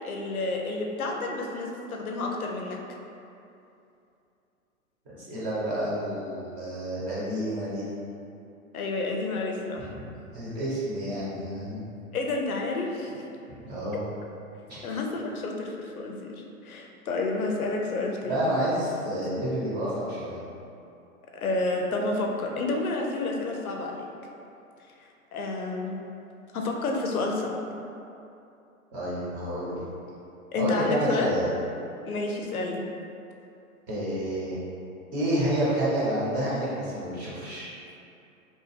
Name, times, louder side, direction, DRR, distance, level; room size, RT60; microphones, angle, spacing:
voice 1, 0.0-2.8 8.7-9.9 12.1-13.3 14.8-18.5 21.3-24.1 25.3-26.0 26.5-27.6 30.5-31.4 32.0-32.9, left 3 dB, 80° left, 1 dB, 0.5 m, -30 dB
voice 2, 5.2-7.9 10.0-11.9 13.6-14.0 14.7-14.8 18.3-20.4 28.9-29.8 30.5-31.5 33.9-34.6 35.1-37.7, right 1 dB, 25° right, -9 dB, 0.8 m, -29 dB
2.8 x 2.2 x 3.2 m, 2.7 s
figure-of-eight pair, 110°, 43 cm